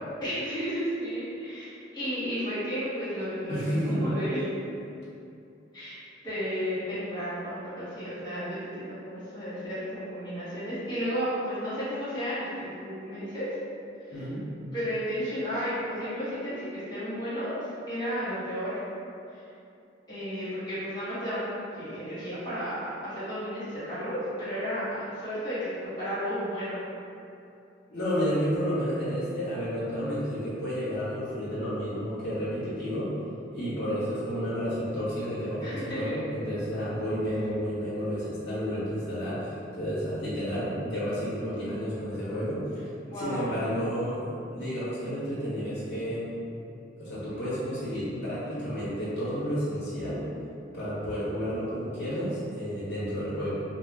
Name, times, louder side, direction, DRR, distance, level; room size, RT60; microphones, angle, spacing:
voice 1, 0.2-4.5 5.7-6.0 6.2-13.5 14.1-14.2 14.7-17.5 17.9-18.8 19.3-19.4 20.1-26.8 35.6-36.1 43.0-43.6, equal, 20° left, -14 dB, 1.5 m, -33 dB
voice 2, 3.5-4.0 14.1-14.4 27.9-33.1 33.5-42.6 43.1-46.3 47.0-50.2 50.7-53.6, equal, 70° left, -11 dB, 0.9 m, -31 dB
2.7 x 2.2 x 3.6 m, 2.7 s
head